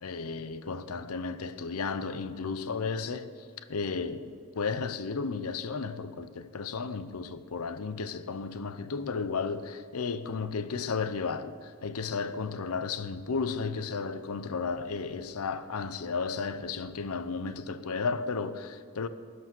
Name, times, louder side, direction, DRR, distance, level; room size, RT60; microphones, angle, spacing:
voice 1, 0.0-19.1, left 4 dB, 90° left, 0.7 m, -34 dB
13.5 x 9.6 x 6.1 m
head